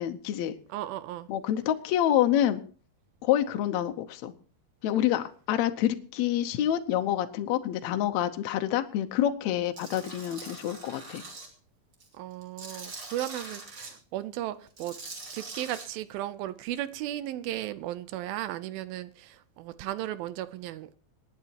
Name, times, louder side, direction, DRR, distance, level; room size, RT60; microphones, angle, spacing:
voice 1, 0.0-0.5 1.3-2.6 3.2-4.3 4.8-11.2, left 11 dB, 80° left, 1.6 m, -27 dB
voice 2, 0.7-1.3 12.1-15.0 15.3-20.9, right 13 dB, 80° right, 2.4 m, -35 dB
Tools, 9.8-11.5 11.9-13.9 14.7-15.9, right 3 dB, 30° right, 3.0 m, -43 dB
26.5 x 9.6 x 2.9 m
omnidirectional pair, 4.3 m